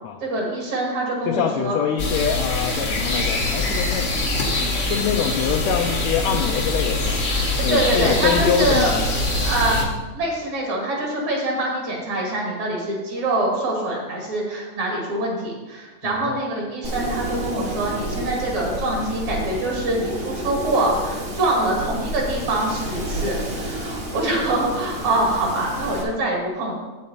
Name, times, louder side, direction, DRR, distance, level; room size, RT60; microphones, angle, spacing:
voice 1, 0.2-1.8 7.3-8.9 9.4-26.8, right 2 dB, 70° right, -2 dB, 3.5 m, -24 dB
voice 2, 1.3-4.1 4.9-7.2 7.6-9.1 9.4-9.5 16.0-16.4, left 8 dB, 75° left, 3 dB, 1.7 m, -24 dB
sound 1, 2.0-9.8, left 2 dB, 55° left, 0.8 m, -23 dB
Wind, 16.8-26.0, right 1 dB, 35° right, 1.0 m, -30 dB
8.5 x 8.3 x 4.3 m, 1.2 s
omnidirectional pair, 3.4 m